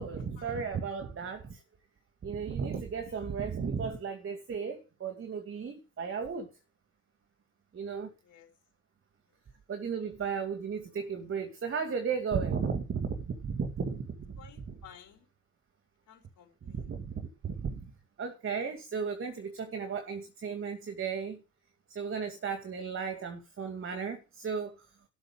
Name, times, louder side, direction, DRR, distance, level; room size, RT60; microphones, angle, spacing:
voice 1, 0.0-1.6 2.2-6.5 7.7-8.1 9.7-14.8 16.7-17.9 18.2-21.4 21.9-24.8, right 6 dB, 30° right, 2.4 m, -35 dB
voice 2, 14.4-15.3 16.1-16.9, left 8 dB, 45° left, 5.2 m, -55 dB
13.0 x 5.1 x 7.6 m
hypercardioid pair, 70°, 42 cm